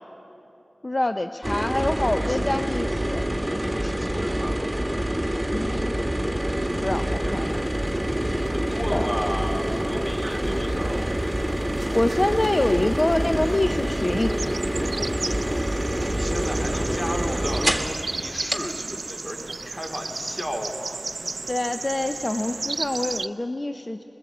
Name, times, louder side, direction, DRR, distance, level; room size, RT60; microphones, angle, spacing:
voice 1, 0.8-3.2 5.5-5.9 6.8-7.6 8.9-9.1 11.9-14.3 21.5-24.0, left 1 dB, 40° left, 8 dB, 0.6 m, -25 dB
sound 1, 1.4-18.0 18.5-18.6, right 1 dB, 10° right, 1.8 m, -26 dB
voice 2, 2.0-2.5 3.4-4.6 8.5-11.1 16.1-21.0, equal, 20° left, 3 dB, 2.5 m, -34 dB
sound 2, 5.8-23.3, right 3 dB, 75° right, 0.4 m, -36 dB
21.5 x 20.0 x 7.9 m, 2.9 s
wide cardioid pair, 45°, 0 cm